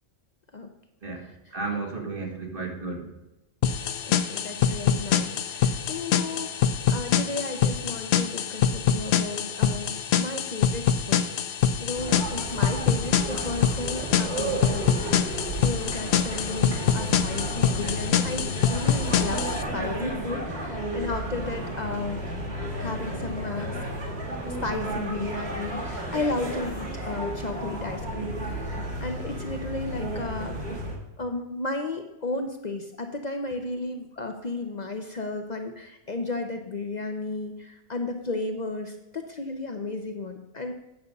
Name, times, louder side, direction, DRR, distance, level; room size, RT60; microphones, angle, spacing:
voice 1, 1.0-3.2 4.0-4.4, right 3 dB, 50° right, 1 dB, 1.9 m, -34 dB
sound 1, 3.6-19.6, left 8 dB, 75° left, 0.9 m, -25 dB
voice 2, 4.0-11.5 11.8-22.2 22.8-23.8 24.5-30.8 31.2-40.7, left 3 dB, 45° left, 5 dB, 0.8 m, -34 dB
sound 2, 11.9-30.9, right 1 dB, 70° right, 2.4 m, -33 dB
9.0 x 6.8 x 5.3 m, 0.95 s
omnidirectional pair, 1.1 m